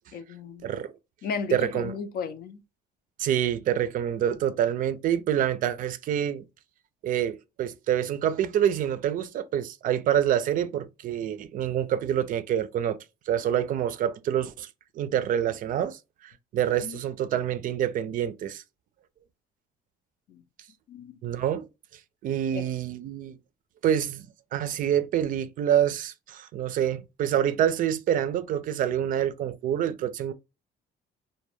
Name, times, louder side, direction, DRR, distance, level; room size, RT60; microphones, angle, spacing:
voice 1, 0.1-0.7 1.2-2.6 16.8-17.0 20.3-20.4 20.9-21.2 22.5-22.7, left 6 dB, 65° left, 0.5 m, -35 dB
voice 2, 0.6-0.9 1.5-2.0 3.2-6.5 7.0-13.0 13.3-14.7 15.0-18.6 21.2-21.7 22.2-23.4 23.8-30.3, right 10 dB, 55° right, 0.4 m, -27 dB
2.2 x 2.1 x 3.1 m
cardioid pair, 110°, 17 cm